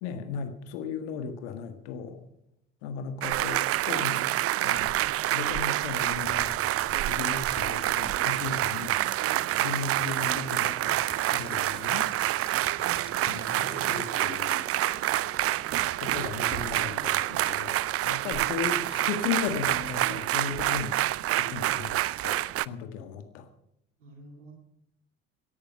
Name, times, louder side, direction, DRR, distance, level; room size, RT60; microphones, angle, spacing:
voice 1, 0.0-2.2 2.8-4.3 4.6-5.0 5.3-6.5 7.1-9.0 9.6-11.0 11.3-12.1 13.2-14.7 16.0-21.0 21.4-22.0 22.2-23.5, left 6 dB, 70° left, 8 dB, 1.8 m, -36 dB
sound 1, 3.2-22.7, right 15 dB, 40° right, 0.5 m, -27 dB
Child speech kid speaking / Bird vocalization bird call bird song / Stream, 6.2-14.2, left 2 dB, 15° left, 2.0 m, -49 dB
voice 2, 9.2-9.7 24.0-24.5, right 4 dB, 85° right, 1 dB, 2.5 m, -50 dB
sound 2, 10.8-17.7, right 2 dB, 25° right, 2.8 m, -50 dB
18.0 x 10.5 x 5.4 m, 0.78 s
figure-of-eight pair, 50°, 35 cm